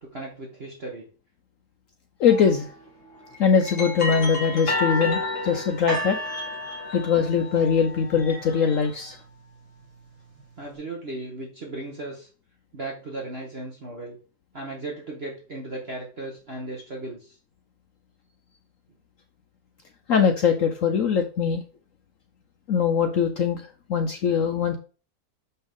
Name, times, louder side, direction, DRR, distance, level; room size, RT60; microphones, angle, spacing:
voice 1, 0.0-1.1 10.6-12.3 12.7-14.2 14.5-17.4, right 2 dB, 40° right, -1 dB, 1.3 m, -36 dB
voice 2, 2.2-2.7 3.4-6.2 6.9-9.2 20.1-21.6 22.7-24.8, left 6 dB, 70° left, 6 dB, 0.8 m, -22 dB
sound 1, 2.3-2.6 3.3-7.4 8.0-9.1, left 2 dB, 40° left, 2.0 m, -32 dB
sound 2, 5.9-9.1 9.8-9.9, equal, 55° right, 2.2 m, -35 dB
6.6 x 5.5 x 3.6 m, 0.37 s
omnidirectional pair, 2.0 m